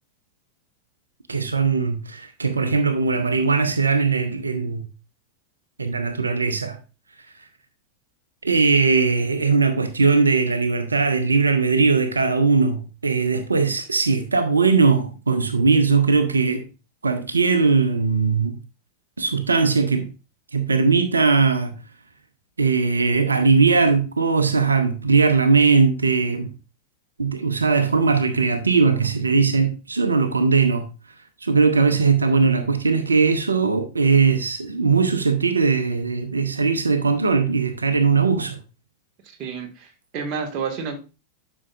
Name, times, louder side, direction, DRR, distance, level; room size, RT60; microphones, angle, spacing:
voice 1, 1.3-4.9 5.8-6.8 8.4-16.6 17.0-18.6 19.2-20.1 20.5-21.7 22.6-26.5 27.2-30.9 31.4-38.6, right 4 dB, 75° right, 0.8 m, -19 dB
voice 2, 39.4-39.9 40.1-41.0, right 5 dB, 40° right, 1.8 m, -29 dB
11.0 x 6.2 x 2.5 m
figure-of-eight pair, 90°, 0 cm